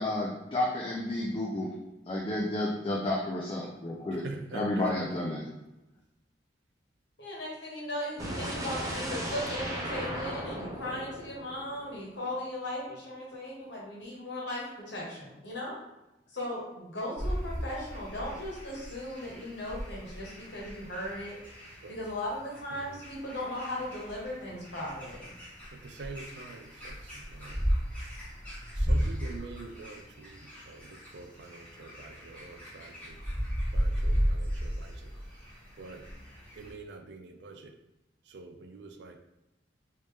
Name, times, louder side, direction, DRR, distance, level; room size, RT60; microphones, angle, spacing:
voice 1, 0.0-1.7 2.1-4.2 4.5-5.4, left 1 dB, 30° left, -3 dB, 0.4 m, -31 dB
voice 2, 4.1-4.9 21.8-22.0 22.7-23.0 25.7-27.8 28.7-33.2 33.7-35.5 35.8-36.1 36.6-37.8 38.3-39.2, right 3 dB, 65° right, 6 dB, 0.4 m, -46 dB
voice 3, 7.2-15.8 16.3-21.4 21.7-25.3, left 1 dB, 70° left, -4 dB, 1.2 m, -37 dB
sound 1, 8.2-12.2, equal, 20° right, 0.6 m, -36 dB
sound 2, 17.2-36.7, equal, 10° left, 1.1 m, -35 dB
3.2 x 2.8 x 3.4 m, 0.94 s
head